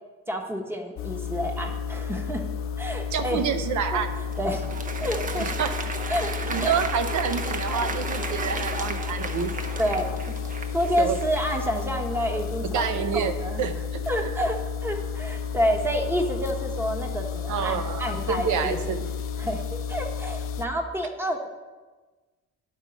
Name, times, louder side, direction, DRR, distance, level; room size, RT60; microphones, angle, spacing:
voice 1, 0.3-2.4 2.8-3.4 3.9-4.0 4.4-4.7 5.0-5.5 6.1-6.8 9.3-9.4 9.8-10.4 10.7-12.9 13.1-13.6 14.1-18.8 19.4-21.5, equal, 10° right, 4 dB, 1.0 m, -29 dB
sound 1, 1.0-20.7, left 6 dB, 45° left, 0.5 m, -32 dB
voice 2, 3.1-4.1 5.4-6.0 6.5-9.5 11.0-11.2 12.7-13.7 17.5-19.0, right 7 dB, 75° right, 8 dB, 0.6 m, -28 dB
Applause, 4.0-11.6, right 3 dB, 25° right, 0.7 m, -34 dB
11.0 x 3.7 x 5.1 m, 1.3 s
cardioid pair, 90°, 30 cm